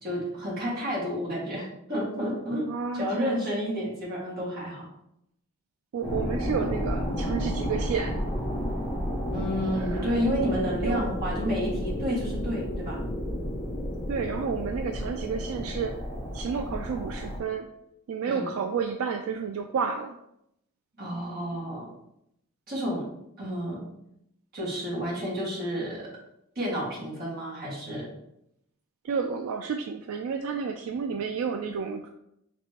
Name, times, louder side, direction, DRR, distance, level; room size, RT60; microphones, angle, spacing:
voice 1, 0.0-2.7 2.9-4.9 9.3-13.0 18.3-18.5 21.0-21.9 22.7-23.1 23.4-23.9 24.5-26.1 26.6-28.1, equal, 45° right, -6 dB, 1.8 m, -30 dB
voice 2, 2.7-3.4 5.9-8.2 9.8-10.2 10.8-11.1 14.1-16.0 16.3-17.7 18.1-20.2 29.0-32.1, right 6 dB, 75° right, 6 dB, 0.3 m, -31 dB
sound 1, 6.0-17.4, equal, 10° left, 1.1 m, -31 dB
5.3 x 3.2 x 2.9 m, 0.79 s
head